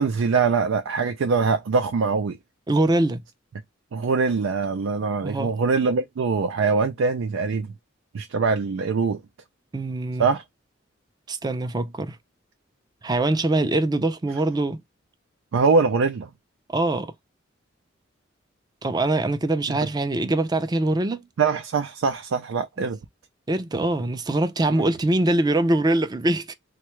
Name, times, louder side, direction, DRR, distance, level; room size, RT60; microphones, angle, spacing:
voice 1, 0.0-2.4 3.9-7.7 8.1-9.2 10.2-10.4 15.5-16.3 19.7-19.8 21.4-23.0 24.7-24.9, right 4 dB, 90° right, 0.4 m, -23 dB
voice 2, 2.7-3.2 5.2-5.5 9.7-10.3 11.3-12.2 13.0-14.8 16.7-17.1 18.8-21.3 23.5-26.5, right 2 dB, 20° right, 0.4 m, -23 dB
3.4 x 2.2 x 3.0 m
head